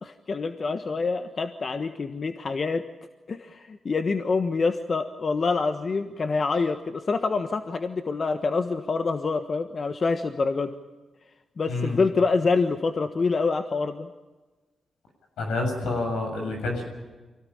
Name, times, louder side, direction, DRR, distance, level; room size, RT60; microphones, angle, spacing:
voice 1, 0.0-2.8 3.3-10.7 11.6-14.1, left 4 dB, 50° left, 8 dB, 1.3 m, -26 dB
voice 2, 15.4-16.8, left 2 dB, 90° left, 2 dB, 7.2 m, -28 dB
24.5 x 17.5 x 8.8 m, 1.2 s
supercardioid pair, 50°, 0 cm